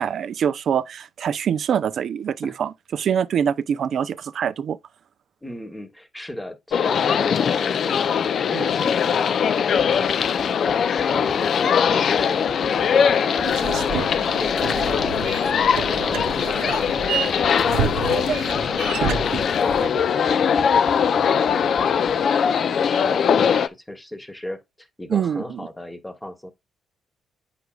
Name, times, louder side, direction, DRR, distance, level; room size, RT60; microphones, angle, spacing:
voice 1, 0.0-4.8 8.5-8.7 25.1-25.7, right 8 dB, 60° right, 0.4 m, -24 dB
voice 2, 5.4-10.8 11.1-15.5 15.9-26.5, left 1 dB, 10° left, 1.1 m, -35 dB
sound 1, 6.7-23.7, left 7 dB, 60° left, 0.4 m, -21 dB
sound 2, 9.8-22.3, right 3 dB, 20° right, 0.7 m, -42 dB
sound 3, 13.4-19.9, right 7 dB, 85° right, 0.8 m, -29 dB
8.0 x 6.0 x 2.3 m
cardioid pair, 90°, 0 cm